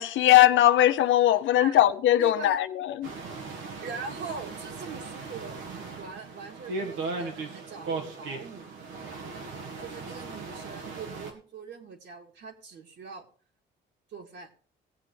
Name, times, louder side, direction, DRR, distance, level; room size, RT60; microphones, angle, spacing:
voice 1, 0.0-3.1, left 13 dB, 75° left, 0.6 m, -20 dB
voice 2, 2.2-2.6 3.8-5.6 6.0-9.4 9.8-13.3 14.1-14.5, right 5 dB, 65° right, 2.3 m, -42 dB
sound 1, 3.0-11.3, right 3 dB, 90° right, 1.9 m, -38 dB
18.5 x 7.6 x 3.3 m
cardioid pair, 90°, 20 cm